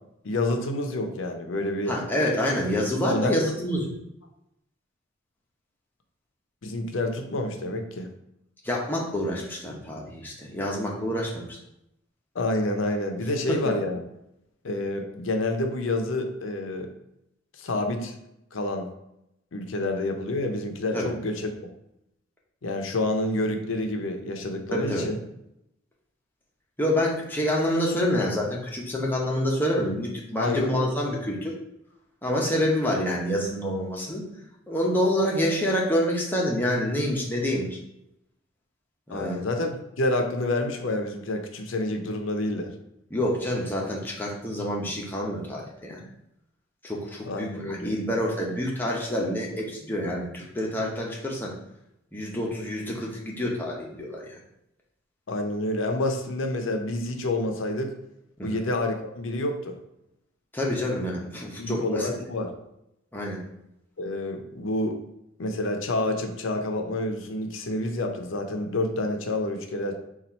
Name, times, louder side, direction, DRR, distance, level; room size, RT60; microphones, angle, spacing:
voice 1, 0.2-1.9 3.1-3.3 6.6-8.1 12.3-14.0 14.6-16.9 17.6-18.1 18.5-18.9 19.5-21.5 22.6-25.2 30.4-31.1 39.1-42.7 47.3-47.9 55.3-57.9 58.4-59.8 61.6-62.5 64.0-65.0 65.4-69.9, left 1 dB, 80° left, 5 dB, 0.6 m, -28 dB
voice 2, 1.9-3.9 8.6-11.4 13.5-13.7 20.9-21.1 24.7-25.1 26.8-31.5 32.2-34.2 34.7-37.8 39.1-39.4 43.1-46.0 46.8-51.5 52.1-54.3 58.4-58.6 60.5-62.1 63.1-63.4, left 1 dB, 10° left, -3 dB, 0.8 m, -27 dB
4.1 x 2.4 x 4.2 m, 0.82 s
head